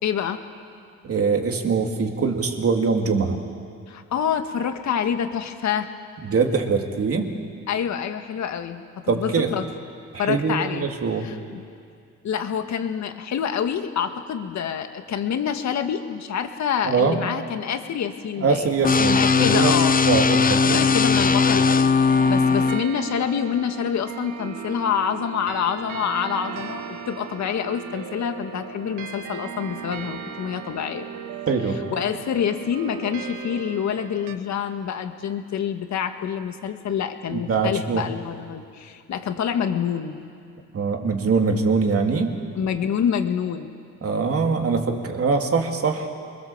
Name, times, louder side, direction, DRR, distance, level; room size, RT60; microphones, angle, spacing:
voice 1, 0.0-0.4 3.9-5.9 7.7-9.6 10.2-10.9 11.2-11.6 12.2-19.9 20.6-21.9 22.3-31.1 31.9-40.3 42.6-43.7, left 8 dB, 65° left, 7 dB, 1.9 m, -27 dB
voice 2, 1.0-3.4 6.2-7.3 9.1-9.6 10.1-11.3 16.8-17.2 18.4-19.7 20.0-20.9 31.5-31.8 37.3-38.1 40.7-42.3 44.0-46.1, right 5 dB, 50° right, 3 dB, 2.9 m, -23 dB
sound 1, 18.8-22.8, left 4 dB, 30° left, 0.9 m, -18 dB
sound 2, 21.9-34.3, right 7 dB, 85° right, 1.7 m, -37 dB
28.0 x 22.0 x 7.4 m, 2.3 s
cardioid pair, 90°, 30 cm